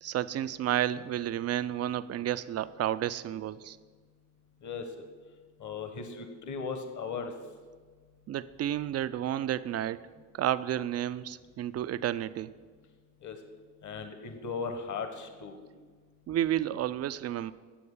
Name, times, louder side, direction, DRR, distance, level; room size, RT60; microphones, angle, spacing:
voice 1, 0.0-3.8 8.3-10.1 10.3-12.5 16.3-17.5, right 11 dB, 35° right, 15 dB, 0.4 m, -31 dB
voice 2, 5.6-7.3 13.2-13.4 13.8-15.6, left 5 dB, 40° left, 7 dB, 1.2 m, -37 dB
8.6 x 7.7 x 5.5 m, 1.5 s
hypercardioid pair, 50°, 45 cm